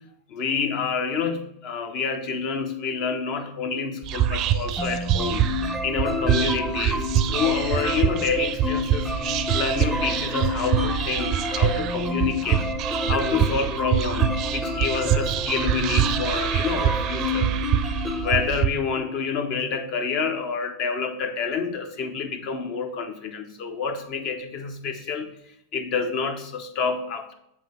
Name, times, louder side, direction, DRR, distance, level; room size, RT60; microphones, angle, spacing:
voice 1, 0.3-5.5 5.8-9.2 9.5-12.6 13.1-17.5 18.1-25.3 25.7-27.3, left 5 dB, 50° left, 8 dB, 0.8 m, -28 dB
Whispering, 4.0-18.7, right 11 dB, 45° right, 0.4 m, -25 dB
sound 1, 4.8-18.5, left 2 dB, 5° left, 0.6 m, -30 dB
7.4 x 2.9 x 5.6 m, 0.78 s
hypercardioid pair, 90°, 0 cm